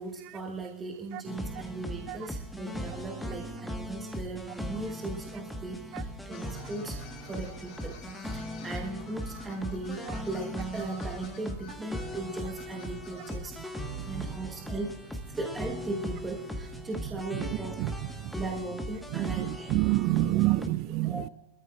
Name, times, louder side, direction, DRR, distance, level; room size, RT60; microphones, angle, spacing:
voice 1, 0.0-13.6 14.1-15.0 15.4-17.8 18.4-19.7 20.4-20.6 21.0-21.3, right 3 dB, 15° right, 1.3 m, -38 dB
sound 1, 1.2-20.7, equal, ahead, 1.4 m, -39 dB
sound 2, 6.3-13.4, left 6 dB, 40° left, 2.3 m, -51 dB
voice 2, 13.9-14.3 17.3-17.5 17.8-17.9 18.2-18.3 19.1-21.3, right 18 dB, 40° right, 0.4 m, -28 dB
25.0 x 13.5 x 2.4 m
figure-of-eight pair, 90°, 0 cm